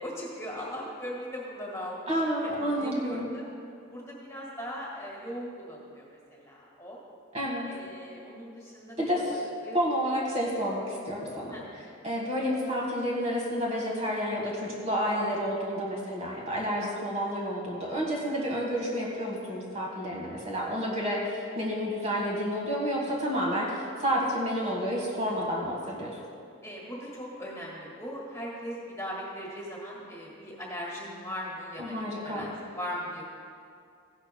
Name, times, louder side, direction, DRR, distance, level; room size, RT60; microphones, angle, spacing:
voice 1, 0.0-3.5 3.9-6.1 6.3-7.0 7.7-9.8 11.5-11.7 25.3-25.4 26.6-33.2, equal, 15° left, -4 dB, 1.8 m, -39 dB
voice 2, 2.1-3.3 7.3-7.7 9.0-9.5 9.7-11.5 12.0-26.2 31.8-32.5, equal, 30° right, -3 dB, 1.5 m, -30 dB
15.5 x 11.5 x 2.2 m, 2.4 s
head